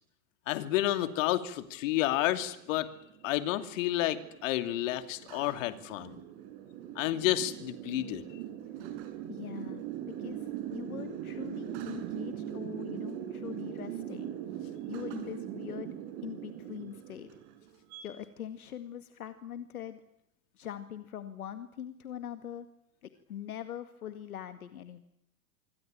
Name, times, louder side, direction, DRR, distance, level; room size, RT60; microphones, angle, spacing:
voice 1, 0.5-2.9 3.2-6.2 7.0-8.2, left 14 dB, 60° left, 10 dB, 2.8 m, -30 dB
sound 1, 1.7-18.0, right 11 dB, 50° right, 7.0 m, -41 dB
voice 2, 9.3-14.3 14.9-16.0 16.2-17.3 18.0-20.0 20.6-22.7 23.0-25.0, left 10 dB, 80° left, 10 dB, 2.1 m, -42 dB
26.5 x 25.0 x 9.0 m, 0.77 s
hypercardioid pair, 95°, 44 cm